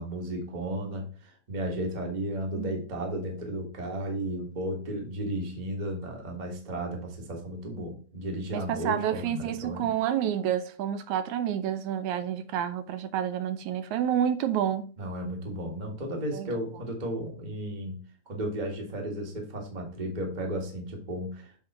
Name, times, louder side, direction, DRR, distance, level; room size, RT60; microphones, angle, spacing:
voice 1, 0.0-9.9 15.0-18.0 18.3-21.6, right 1 dB, 20° right, 1.2 m, -34 dB
voice 2, 8.5-14.9 16.3-16.5, right 10 dB, 80° right, 2.1 m, -29 dB
7.9 x 3.8 x 4.2 m
omnidirectional pair, 3.3 m